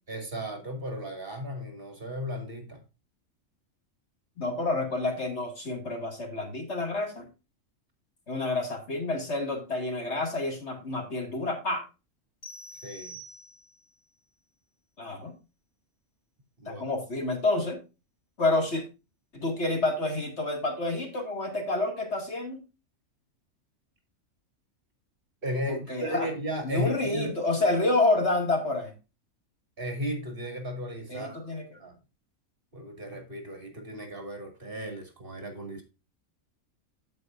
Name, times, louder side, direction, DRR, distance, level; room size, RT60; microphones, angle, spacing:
voice 1, 0.1-2.8 12.8-13.2 16.6-16.8 25.4-27.3 29.8-31.9 32.7-35.8, equal, 40° right, 4 dB, 2.6 m, -35 dB
voice 2, 4.4-7.3 8.3-11.8 15.0-15.3 16.7-17.8 18.4-18.8 19.3-22.6 25.7-26.3 26.6-28.9 31.1-31.7, left 2 dB, 50° left, 3 dB, 2.4 m, -28 dB
sound 1, 12.4-14.0, right 1 dB, 20° left, 2.2 m, -46 dB
15.5 x 5.4 x 2.5 m, 0.29 s
omnidirectional pair, 1.5 m